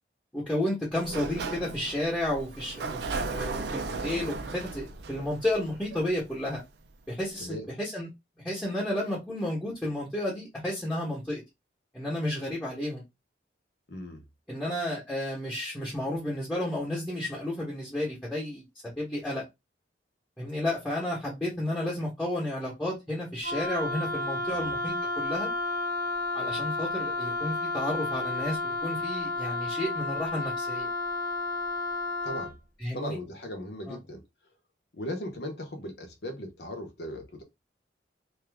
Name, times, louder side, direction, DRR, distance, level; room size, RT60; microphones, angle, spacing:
voice 1, 0.3-6.6 7.1-8.1 8.4-11.4 11.9-13.0 14.5-19.4 20.4-25.5 26.3-30.9 32.8-33.2 33.9-34.0, left 1 dB, 5° left, 1.0 m, -32 dB
Sliding door, 0.9-6.6, right 3 dB, 65° right, 0.4 m, -36 dB
voice 2, 13.9-14.2 24.5-24.7 32.2-32.5 32.9-34.2 34.9-37.4, equal, 65° left, 0.9 m, -38 dB
Wind instrument woodwind instrument, 23.4-32.5, left 2 dB, 50° right, 0.8 m, -31 dB
2.7 x 2.4 x 3.4 m
head